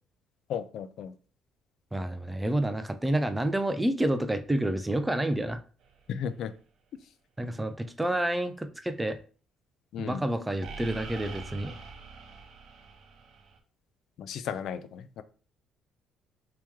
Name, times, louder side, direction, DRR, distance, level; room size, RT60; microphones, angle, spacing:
voice 1, 0.5-1.1 6.1-6.5 9.9-10.2 14.2-15.2, left 8 dB, 65° left, 0.3 m, -35 dB
voice 2, 1.9-5.6 7.4-9.2 10.0-11.7, right 1 dB, 10° right, 0.4 m, -29 dB
sound 1, 5.8-6.0 10.6-13.6, right 4 dB, 65° right, 0.7 m, -44 dB
3.0 x 2.9 x 3.5 m
cardioid pair, 110°, 0 cm